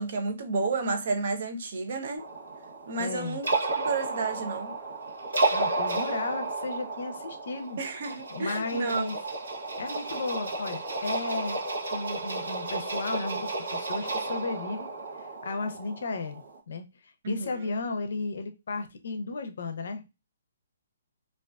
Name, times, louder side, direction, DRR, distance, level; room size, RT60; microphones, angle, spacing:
voice 1, 0.0-2.2 2.9-3.6 3.8-4.7 7.8-9.1 17.2-17.7, right 3 dB, 55° right, 0.5 m, -31 dB
sound 1, 2.2-16.6, right 3 dB, 90° right, 0.8 m, -32 dB
voice 2, 3.0-3.4 5.5-7.8 8.3-9.2 9.8-11.6 11.9-14.9 15.4-16.8 17.3-20.1, left 3 dB, 70° left, 0.5 m, -34 dB
2.3 x 2.3 x 2.2 m
hypercardioid pair, 160°, 0 cm